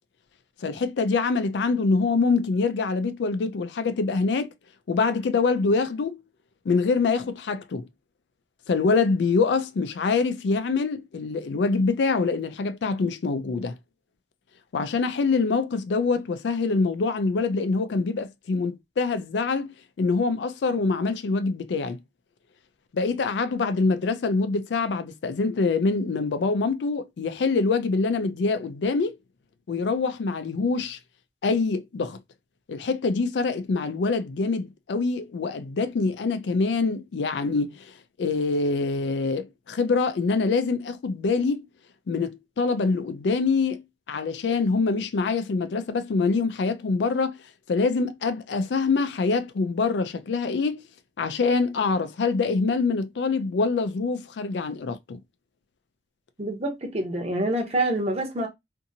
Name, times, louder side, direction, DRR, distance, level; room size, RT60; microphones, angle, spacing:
voice 1, 0.6-4.5 4.9-6.2 6.7-7.9 8.7-13.8 14.7-22.0 22.9-29.2 29.7-31.0 31.4-32.2 32.7-37.9 38.2-41.7 42.1-43.8 44.1-47.3 47.7-50.9 51.2-55.2, left 4 dB, 80° left, 0.4 m, -25 dB
voice 2, 56.4-58.5, right 1 dB, 35° right, 0.8 m, -26 dB
2.7 x 2.6 x 2.6 m
head